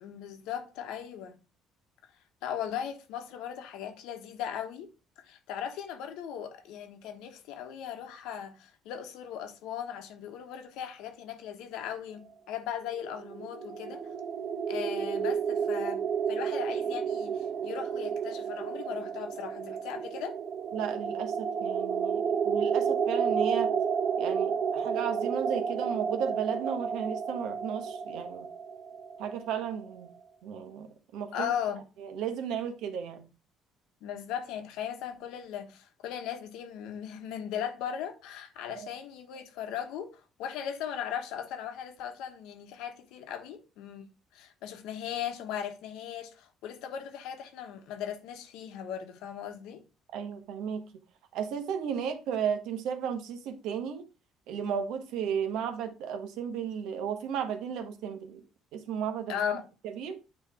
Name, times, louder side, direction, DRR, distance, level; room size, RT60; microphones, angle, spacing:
voice 1, 0.0-1.4 2.4-4.9 5.3-14.0 14.7-20.4 31.3-31.8 34.0-44.1 44.3-49.8 59.3-59.6, left 9 dB, 85° left, 1.2 m, -38 dB
sound 1, 13.0-29.9, right 7 dB, 45° right, 0.6 m, -31 dB
voice 2, 20.7-23.7 24.2-28.5 29.2-30.1 30.4-31.5 32.0-33.3 38.7-38.9 50.1-50.8 51.3-54.0 54.5-58.4 58.7-59.4 59.8-60.2, right 8 dB, 80° right, 1.2 m, -34 dB
8.9 x 3.2 x 4.8 m
cardioid pair, 135°, 0 cm